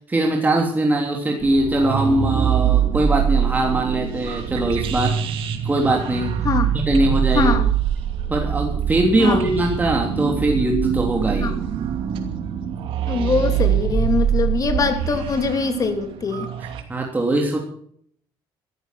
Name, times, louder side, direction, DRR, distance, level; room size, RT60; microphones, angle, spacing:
voice 1, 0.1-5.2 5.6-6.3 6.7-7.5 8.3-11.5 16.9-17.6, right 2 dB, 20° right, 0 dB, 3.2 m, -21 dB
sound 1, 1.4-16.8, right 9 dB, 80° right, 2.6 m, -23 dB
voice 2, 6.4-6.7 7.3-7.7 9.2-9.4 11.4-11.6 13.1-16.5, left 4 dB, 40° left, 7 dB, 3.1 m, -22 dB
14.5 x 13.5 x 5.9 m, 0.62 s
cardioid pair, 110°, 9 cm